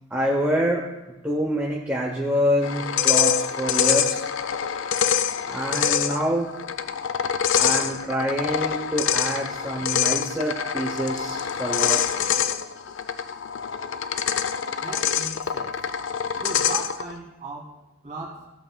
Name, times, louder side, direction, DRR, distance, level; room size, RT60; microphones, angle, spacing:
voice 1, 0.1-0.8 1.2-4.3 5.5-6.5 7.5-12.3, equal, 5° right, -2 dB, 0.7 m, -26 dB
sound 1, 2.6-17.1, left 8 dB, 65° left, 0.4 m, -25 dB
voice 2, 14.8-15.8 16.4-18.5, right 3 dB, 35° right, -3 dB, 2.2 m, -37 dB
14.5 x 7.8 x 2.2 m, 1.1 s
head